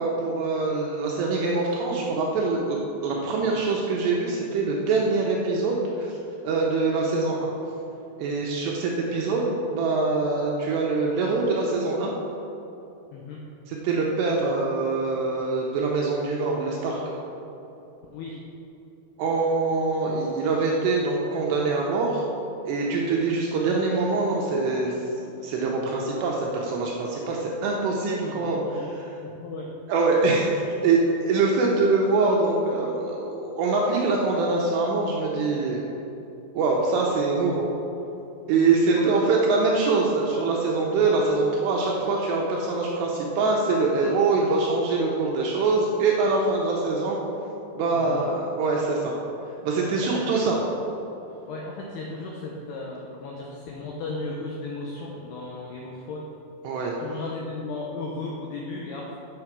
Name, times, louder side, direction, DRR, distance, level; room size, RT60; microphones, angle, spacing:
voice 1, 0.0-6.1 6.4-7.5 8.2-12.1 13.7-17.0 19.2-22.2 22.7-24.9 25.4-28.6 29.9-30.5 30.8-35.8 36.5-37.6 38.5-47.2 47.8-49.1 49.6-50.6 56.6-56.9, right 3 dB, 80° right, -2 dB, 2.5 m, -24 dB
voice 2, 28.2-28.9 29.2-29.7 38.6-39.2 47.9-48.3 49.9-50.2 51.5-56.2 57.0-59.2, left 3 dB, 80° left, -2 dB, 2.3 m, -35 dB
7.8 x 6.8 x 5.9 m, 2.9 s
omnidirectional pair, 5.7 m